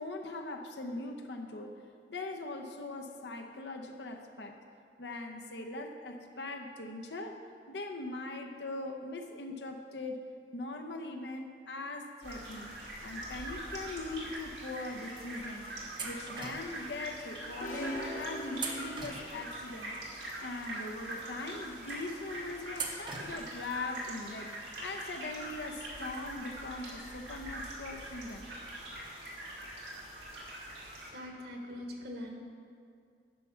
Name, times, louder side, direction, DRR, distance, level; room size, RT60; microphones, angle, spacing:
voice 1, 0.0-1.8 2.1-4.6 5.0-7.4 7.7-10.2 10.5-12.7 13.0-15.7 16.0-20.0 20.4-24.5 24.8-28.5, left 2 dB, 80° left, 4 dB, 0.9 m, -41 dB
sound 1, 12.2-31.1, right 1 dB, 85° right, 2.1 m, -43 dB
sound 2, 16.0-16.9 18.5-19.7 22.7-23.6, right 4 dB, 25° right, 0.7 m, -40 dB
sound 3, 17.6-19.6, equal, 50° left, 1.0 m, -40 dB
voice 2, 30.8-32.3, left 1 dB, 60° right, 1 dB, 1.3 m, -43 dB
9.7 x 5.8 x 5.6 m, 2.3 s
head